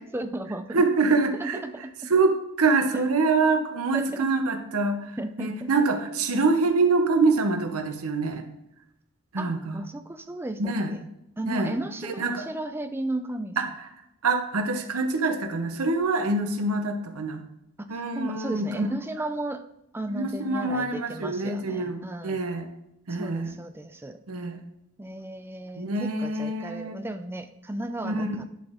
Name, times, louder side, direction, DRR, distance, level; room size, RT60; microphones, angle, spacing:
voice 1, 0.1-0.6 1.3-2.1 2.9-3.3 3.9-4.3 5.2-5.7 9.4-11.0 11.4-13.6 17.8-19.6 19.9-22.4 23.1-24.2 25.0-28.4, right 1 dB, 10° right, 9 dB, 0.3 m, -35 dB
voice 2, 0.7-1.6 2.1-5.0 5.4-8.5 9.3-9.8 10.6-10.9 11.5-11.7 12.0-12.4 13.6-13.7 14.2-17.4 17.9-18.9 20.1-22.7 23.1-23.5 24.3-24.6 25.8-27.0 28.0-28.3, right 3 dB, 80° right, 6 dB, 0.9 m, -25 dB
10.5 x 4.2 x 3.6 m, 0.86 s
head